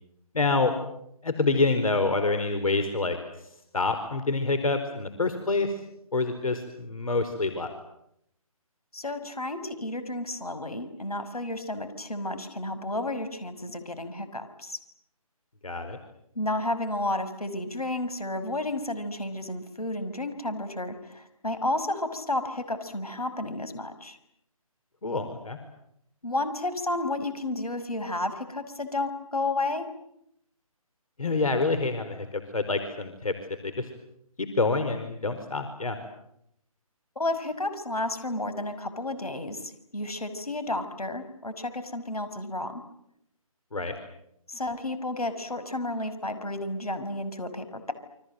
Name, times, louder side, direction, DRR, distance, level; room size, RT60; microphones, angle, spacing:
voice 1, 0.3-0.7 1.2-3.2 3.7-5.7 6.1-7.7 15.6-16.0 25.0-25.6 31.2-33.3 33.6-33.9 34.4-36.0 43.7-43.9, left 3 dB, 70° left, 8 dB, 4.7 m, -27 dB
voice 2, 8.9-14.8 16.4-24.2 26.2-29.9 37.2-42.8 44.5-47.9, left 2 dB, 85° left, 10 dB, 5.7 m, -32 dB
29.5 x 25.0 x 7.9 m, 0.76 s
figure-of-eight pair, 155°, 19 cm